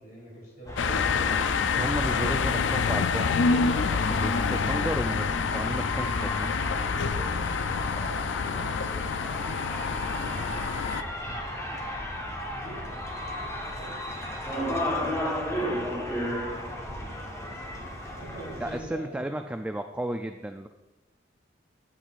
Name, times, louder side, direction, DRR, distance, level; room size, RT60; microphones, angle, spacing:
voice 1, 0.0-1.4 1.9-2.5 7.7-11.1 11.5-11.6 12.5-12.9 13.7-14.0 15.4-17.6 18.2-19.2, right 1 dB, 50° left, -5 dB, 3.6 m, -45 dB
sound 1, 0.7-18.8, equal, 15° left, 1.1 m, -34 dB
sound 2, 0.8-11.0, left 5 dB, 80° left, 0.4 m, -27 dB
voice 2, 1.8-3.4 3.7-6.6 18.6-20.7, right 1 dB, 5° right, 6 dB, 0.3 m, -33 dB
15.0 x 8.4 x 2.5 m, 1.1 s
head